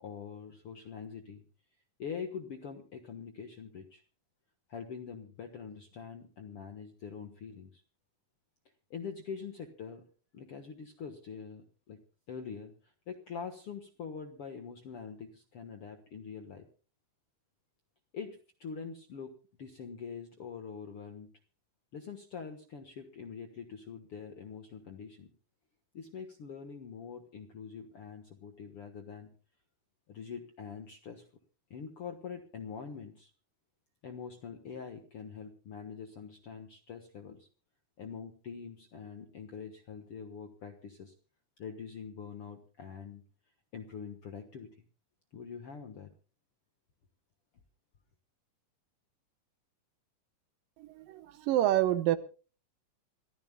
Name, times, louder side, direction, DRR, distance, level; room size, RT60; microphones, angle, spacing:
voice 1, 0.0-1.4 2.0-4.0 4.7-7.8 8.9-10.0 10.3-12.0 12.3-16.7 18.1-19.3 19.6-21.3 21.9-25.3 25.9-29.3 30.1-31.3 31.7-33.3 34.0-37.5 38.0-41.1 41.6-43.2 43.7-44.7 45.3-46.1, left 6 dB, 55° left, 6 dB, 1.7 m, -44 dB
voice 2, 50.8-52.2, right 13 dB, 80° right, 12 dB, 2.6 m, -28 dB
27.0 x 14.5 x 2.3 m, 0.37 s
omnidirectional pair, 4.1 m